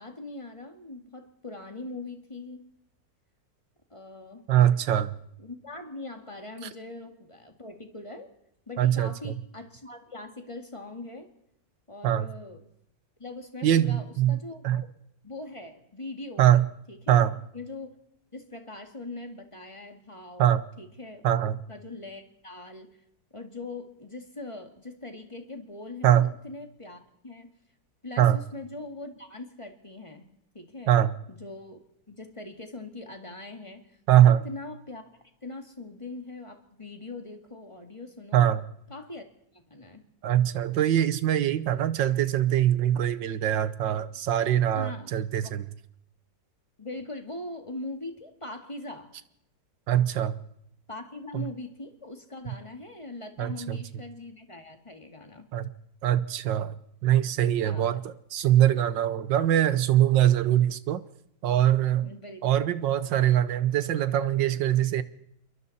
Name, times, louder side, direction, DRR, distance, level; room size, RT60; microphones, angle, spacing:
voice 1, 0.0-2.7 3.9-4.5 5.4-8.3 8.7-11.3 11.9-12.6 13.2-14.9 15.2-16.5 16.9-17.3 17.5-18.0 18.3-20.5 20.8-21.2 21.7-23.0 23.3-27.5 28.0-30.9 31.3-31.8 32.1-35.0 35.4-38.4 38.9-39.2 39.5-40.0 44.8-45.1 45.4-45.6 46.8-49.1 50.9-55.5 57.6-58.0 62.0-62.4, left 2 dB, 15° left, 2.0 m, -41 dB
voice 2, 4.5-5.1 8.8-9.4 12.0-12.3 13.6-14.8 16.4-16.7 17.1-17.4 20.4-20.7 21.2-21.6 26.0-26.3 28.2-28.4 30.9-31.1 34.1-34.5 38.3-38.6 40.2-45.7 49.9-50.4 51.3-51.5 53.4-53.8 55.5-55.6 56.0-56.8 57.0-61.0 61.4-62.1 62.4-65.0, right 11 dB, 85° right, 1.7 m, -23 dB
27.5 x 22.5 x 4.2 m
omnidirectional pair, 1.9 m